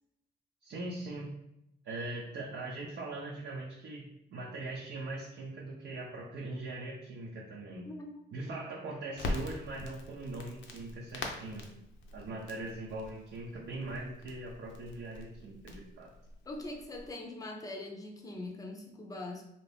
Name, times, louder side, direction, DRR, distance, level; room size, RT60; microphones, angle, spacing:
voice 1, 0.6-1.3 1.8-7.9 8.3-11.7 12.1-16.1, right 2 dB, 65° right, -4 dB, 0.7 m, -41 dB
voice 2, 7.8-8.2 8.5-8.6 16.5-19.5, left 2 dB, 15° left, 1 dB, 0.6 m, -42 dB
Crackle, 9.1-17.1, left 2 dB, 70° left, 0.6 m, -43 dB
2.7 x 2.5 x 3.3 m, 0.82 s
cardioid pair, 90°, 20 cm